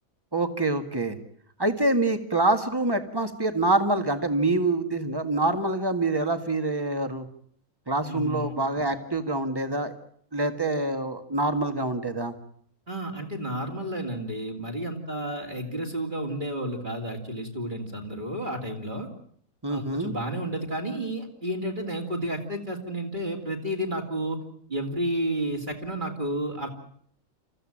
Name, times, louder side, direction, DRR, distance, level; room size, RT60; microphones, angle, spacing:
voice 1, 0.3-1.2 1.6-7.3 7.9-9.9 10.3-12.3 19.6-20.1, right 2 dB, 15° right, 8 dB, 1.9 m, -26 dB
voice 2, 8.0-8.5 12.9-19.1 19.7-24.4 24.7-26.7, right 1 dB, 35° right, 1 dB, 3.1 m, -31 dB
28.5 x 15.0 x 8.8 m, 0.63 s
omnidirectional pair, 1.4 m